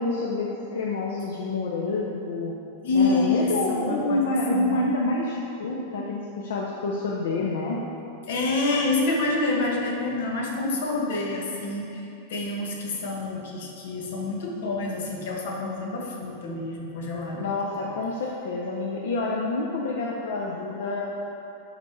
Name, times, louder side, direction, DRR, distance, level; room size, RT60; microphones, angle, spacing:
voice 1, 0.0-2.5 2.9-7.8 17.4-21.3, left 2 dB, 80° left, -2 dB, 0.8 m, -28 dB
voice 2, 2.8-4.2 4.5-4.8 8.3-12.0 12.3-17.9, left 3 dB, 60° left, -1 dB, 1.5 m, -27 dB
12.0 x 4.2 x 4.8 m, 2.7 s
supercardioid pair, 175°, 0 cm